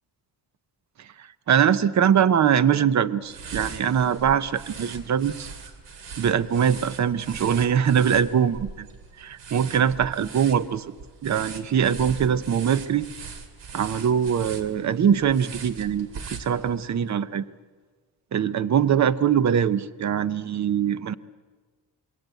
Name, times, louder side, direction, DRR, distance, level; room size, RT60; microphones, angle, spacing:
voice 1, 1.2-5.5 6.2-8.9 9.2-10.8 11.2-13.1 13.7-16.1 16.4-17.5 18.3-21.1, right 8 dB, 40° right, 15 dB, 0.8 m, -22 dB
sound 1, 3.2-16.9, right 5 dB, 90° right, 2.7 m, -40 dB
27.0 x 21.5 x 8.2 m, 1.5 s
wide cardioid pair, 160°, 42 cm